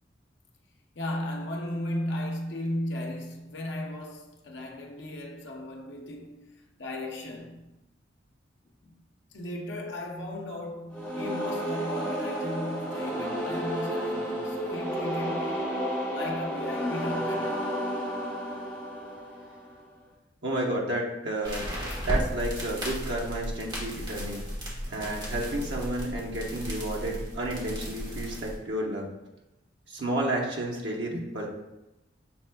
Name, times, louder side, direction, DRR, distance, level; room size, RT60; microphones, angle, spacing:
voice 1, 0.9-7.8 8.8-8.9 9.3-15.7 16.1-17.8, left 1 dB, 75° left, 0.7 m, -36 dB
sound 1, 10.9-19.8, equal, 10° left, 0.9 m, -32 dB
voice 2, 20.4-21.6 22.0-24.5 24.9-29.0 29.9-31.5, right 1 dB, 70° right, 0.9 m, -31 dB
sound 2, 21.4-28.6, equal, 25° right, 1.1 m, -34 dB
6.0 x 3.4 x 2.2 m
head